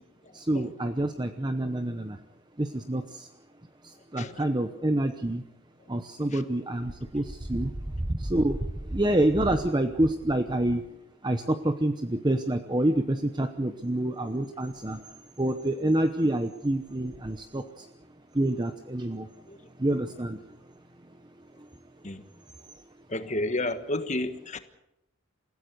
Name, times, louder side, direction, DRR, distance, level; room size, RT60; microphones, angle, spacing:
voice 1, 0.3-2.2 2.6-3.3 4.1-5.4 5.9-7.7 8.1-8.6 8.9-10.8 11.2-15.0 15.4-17.9 18.3-19.3 19.8-20.4, right 1 dB, 20° right, 7 dB, 0.9 m, -27 dB
voice 2, 23.1-24.6, left 2 dB, 35° left, 9 dB, 1.4 m, -31 dB
28.0 x 16.5 x 6.9 m, 0.87 s
head